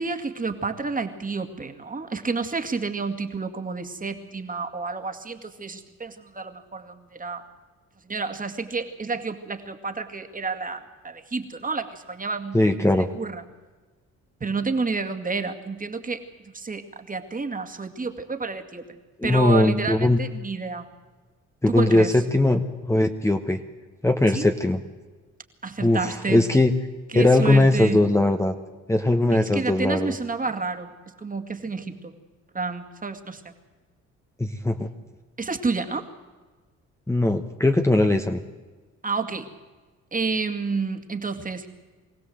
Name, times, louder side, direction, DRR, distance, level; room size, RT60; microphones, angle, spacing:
voice 1, 0.0-7.4 8.0-13.4 14.4-16.2 16.5-18.8 19.2-20.9 21.7-22.2 24.3-24.5 25.6-26.5 27.1-28.0 29.3-30.9 31.2-32.1 32.5-33.4 35.4-36.1 39.0-39.5 40.1-41.7, right 4 dB, 25° right, 6 dB, 2.2 m, -30 dB
voice 2, 12.5-13.1 19.2-20.2 21.6-23.6 24.0-24.8 25.8-26.7 27.1-28.5 28.9-30.1 34.4-34.9 37.1-38.4, left 2 dB, 10° left, 5 dB, 1.2 m, -20 dB
24.0 x 16.5 x 7.9 m, 1.3 s
cardioid pair, 90°, 30 cm